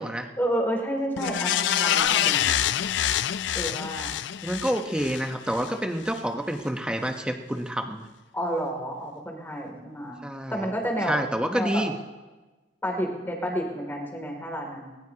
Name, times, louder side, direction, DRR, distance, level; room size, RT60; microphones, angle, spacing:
voice 1, 0.4-2.6 3.5-4.1 6.3-6.4 8.3-10.2 10.5-11.2 11.5-11.8 12.8-14.9, equal, 10° left, 0 dB, 2.9 m, -30 dB
sound 1, 1.2-5.7 6.1-6.2, left 10 dB, 60° left, 0.4 m, -26 dB
voice 2, 4.4-8.1 10.2-10.7 11.0-11.9, equal, 5° right, 4 dB, 1.1 m, -28 dB
20.5 x 19.5 x 3.0 m, 1.2 s
head